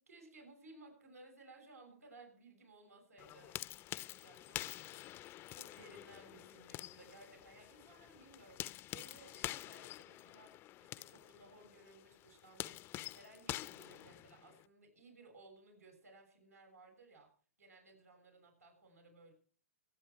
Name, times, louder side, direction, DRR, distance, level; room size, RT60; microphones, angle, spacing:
voice 1, 0.0-3.6 4.2-5.0 5.6-17.3 17.6-19.3, right 2 dB, 85° right, 3 dB, 6.6 m, -60 dB
sound 1, 3.2-14.6, left 15 dB, 30° left, 0.6 m, -47 dB
25.0 x 8.6 x 4.7 m, 0.42 s
figure-of-eight pair, 110°, 8 cm